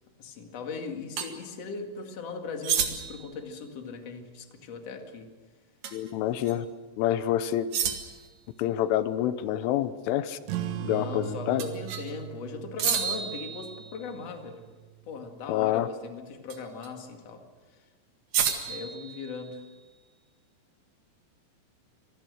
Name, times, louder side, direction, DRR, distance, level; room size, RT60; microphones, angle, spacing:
voice 1, 0.2-5.3 10.8-14.6 15.1-17.4 17.7-17.8 18.7-19.6, left 4 dB, 45° left, 4 dB, 2.3 m, -39 dB
sound 1, 1.2-1.3 2.6-3.3 5.8-6.1 6.5-6.6 7.7-8.3 11.6-12.1 12.8-14.2 16.5-16.9 18.3-19.7, right 8 dB, 55° right, 2.8 m, -31 dB
voice 2, 5.9-6.7 7.0-7.7 8.6-10.4 10.8-11.6 15.5-15.9, left 12 dB, 90° left, 13 dB, 3.4 m, -27 dB
sound 2, 10.4-15.5, right 13 dB, 80° right, 3.6 m, -39 dB
26.0 x 19.5 x 6.5 m, 1.3 s
omnidirectional pair, 5.6 m